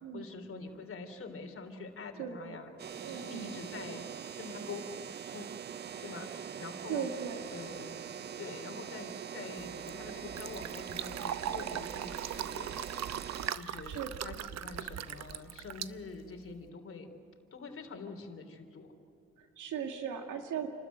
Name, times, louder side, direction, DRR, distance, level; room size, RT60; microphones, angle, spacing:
voice 1, 0.1-2.7 3.1-4.1 4.4-4.8 5.3-5.5 5.8-6.3 6.6-7.1 7.5-8.0 8.4-12.8 13.5-17.1 17.5-18.9, left 4 dB, 45° left, 5 dB, 3.3 m, -45 dB
voice 2, 2.2-2.6 3.0-3.5 6.9-7.4 13.9-14.1 19.4-20.7, right 8 dB, 80° right, 4 dB, 2.0 m, -38 dB
sound 1, 2.8-13.6, right 8 dB, 35° right, 0.5 m, -43 dB
Fill (with liquid), 9.6-16.7, right 10 dB, 60° right, 0.8 m, -40 dB
28.5 x 13.0 x 9.4 m, 2.7 s
cardioid pair, 90°, 30 cm